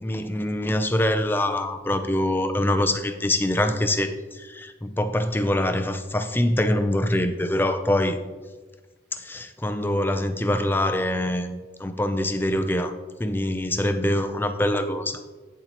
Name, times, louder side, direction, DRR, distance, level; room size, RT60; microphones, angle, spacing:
voice 1, 0.0-8.2 9.1-12.9 13.2-15.2, left 1 dB, 10° left, 8 dB, 0.4 m, -24 dB
9.5 x 6.9 x 2.9 m, 1.3 s
head